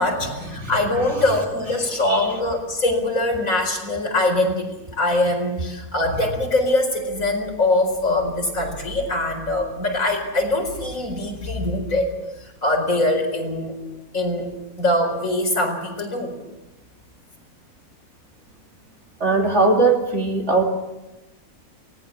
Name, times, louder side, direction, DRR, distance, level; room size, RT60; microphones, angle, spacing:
voice 1, 0.0-12.1 12.4-13.8 14.1-14.5 14.8-16.4, left 2 dB, 60° left, 3 dB, 5.0 m, -23 dB
voice 2, 19.2-20.6, right 3 dB, 45° right, 2 dB, 3.0 m, -19 dB
24.0 x 18.5 x 7.3 m, 1.0 s
omnidirectional pair, 1.6 m